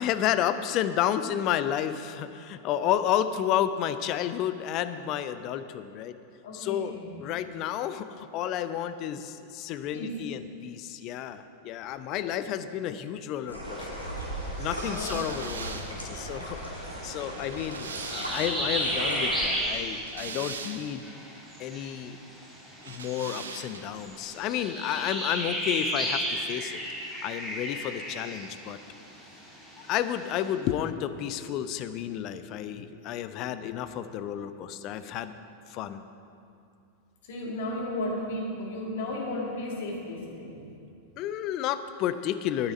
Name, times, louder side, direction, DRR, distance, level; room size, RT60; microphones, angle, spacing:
voice 1, 0.0-6.1 6.5-6.9 7.2-14.1 14.6-21.0 21.6-22.2 22.8-26.8 27.2-28.8 29.9-35.3 35.7-36.0 41.2-42.7, left 10 dB, 40° left, 12 dB, 0.5 m, -31 dB
voice 2, 6.4-7.2 9.9-10.2 12.2-12.4 14.9-15.5 37.2-40.6, left 1 dB, 55° left, -1 dB, 2.0 m, -34 dB
sound 1, 13.5-19.4, equal, 90° left, 1.8 m, -37 dB
sound 2, 13.6-30.5, equal, 10° right, 3.0 m, -35 dB
sound 3, 14.7-18.8 19.7-21.1 22.8-24.0, right 5 dB, 65° right, 0.7 m, -41 dB
12.0 x 9.8 x 4.0 m, 2.6 s
figure-of-eight pair, 90°, 0 cm